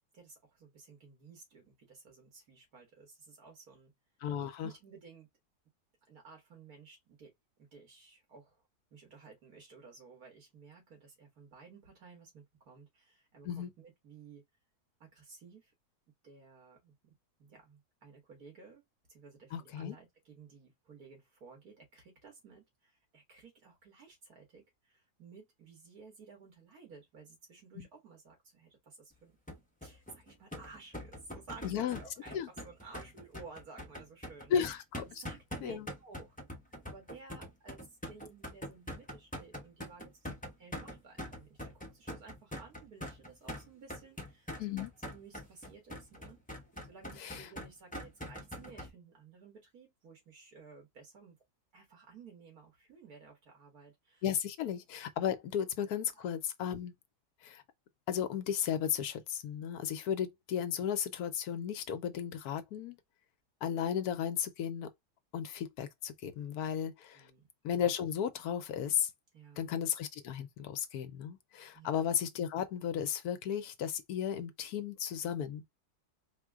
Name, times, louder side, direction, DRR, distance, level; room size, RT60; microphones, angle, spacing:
voice 1, 0.1-3.9 4.6-5.3 6.1-8.6 8.9-14.4 15.0-15.7 16.2-18.8 19.1-29.4 29.8-31.7 32.0-34.6 35.1-36.4 36.8-40.3 40.6-44.5 45.0-46.4 46.9-51.4 51.7-54.2 56.1-56.2 67.1-67.5 69.3-69.7 71.7-72.0, right 4 dB, 70° right, 2.2 m, -55 dB
voice 2, 4.2-4.7 13.4-13.7 19.5-20.0 27.8-27.9 31.6-32.0 32.3-32.5 34.5-35.0 35.6-35.9 44.6-44.9 47.2-47.5 54.2-56.9 57.4-57.6 58.1-63.0 63.6-64.9 65.3-67.3 67.6-69.1 69.6-75.6, left 9 dB, 75° left, 1.1 m, -34 dB
sound 1, 29.5-48.9, left 1 dB, 10° left, 0.5 m, -44 dB
4.3 x 2.2 x 3.5 m
omnidirectional pair, 1.7 m